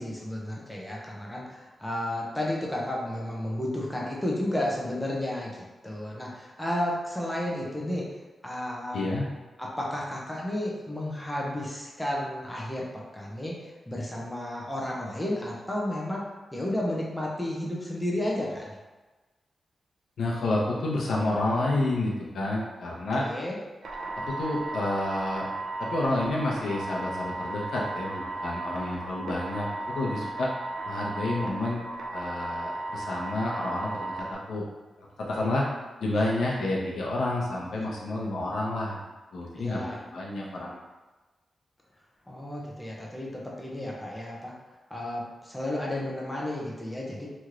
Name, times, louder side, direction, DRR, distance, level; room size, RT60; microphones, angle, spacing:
voice 1, 0.0-9.1 9.6-12.9 13.1-18.8 23.2-23.6 39.5-40.0 42.3-44.5 44.9-47.3, left 1 dB, 5° left, -4 dB, 0.5 m, -32 dB
voice 2, 8.9-9.2 20.2-23.2 24.3-25.5 25.8-30.5 30.9-31.8 32.1-34.7 35.2-35.7 36.0-39.0 39.3-40.8, left 2 dB, 80° left, -3 dB, 0.6 m, -29 dB
sound 1, 23.8-34.3, right 2 dB, 75° right, 0.4 m, -35 dB
3.0 x 3.0 x 2.4 m, 1.2 s
wide cardioid pair, 170°, 0 cm